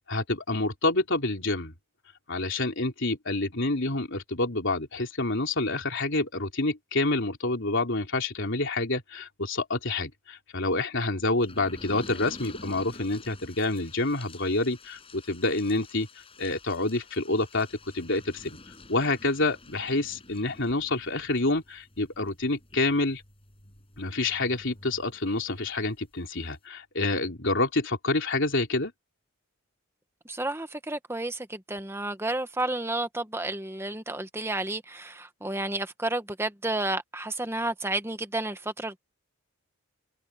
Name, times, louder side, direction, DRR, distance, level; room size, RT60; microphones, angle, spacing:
voice 1, 0.1-1.7 2.3-16.1 16.4-17.7 17.9-18.6 18.9-23.2 24.0-28.9, left 2 dB, 55° left, 3.9 m, -28 dB
sound 1, 11.4-25.7 26.2-26.3 26.5-26.6, left 2 dB, 25° left, 6.3 m, -49 dB
voice 2, 30.2-39.0, right 2 dB, 10° right, 1.3 m, -31 dB
head